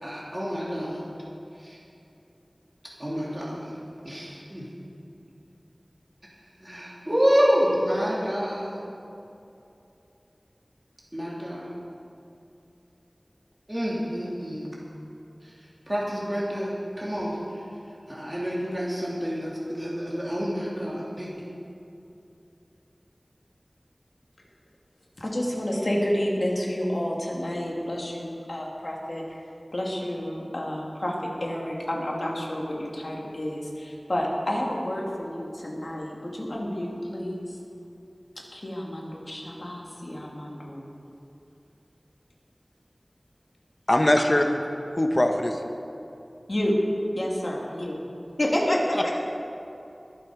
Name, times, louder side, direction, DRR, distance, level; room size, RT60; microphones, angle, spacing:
voice 1, 0.0-1.0 1.6-1.8 3.0-3.8 4.0-4.6 6.6-8.8 11.1-11.8 13.7-14.8 15.4-15.5 15.9-17.4 18.1-21.5, equal, 25° right, -5 dB, 2.8 m, -28 dB
voice 2, 25.2-29.4 29.7-31.1 31.4-37.6 38.5-40.9 46.5-46.8 47.1-48.0 48.4-49.2, equal, 60° left, -2 dB, 2.5 m, -29 dB
voice 3, 43.9-44.5 44.9-45.6 48.9-49.0, left 1 dB, 45° left, 4 dB, 1.0 m, -21 dB
21.5 x 7.8 x 5.0 m, 2.8 s
wide cardioid pair, 45°, 0 cm